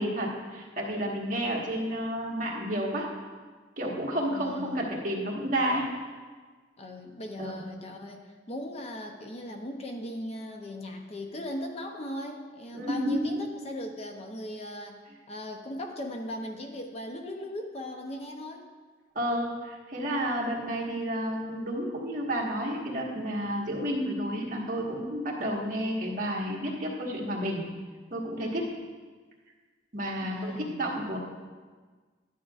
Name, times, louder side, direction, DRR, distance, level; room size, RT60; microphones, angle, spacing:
voice 1, 0.0-3.1 3.8-5.9 7.4-7.5 12.7-13.4 19.1-27.6 28.1-28.7 29.9-31.2, equal, 50° right, -3 dB, 1.5 m, -31 dB
voice 2, 4.3-4.9 6.8-15.0 15.3-18.7 30.2-30.8, left 1 dB, 35° left, 3 dB, 0.6 m, -38 dB
11.5 x 7.7 x 2.4 m, 1.4 s
head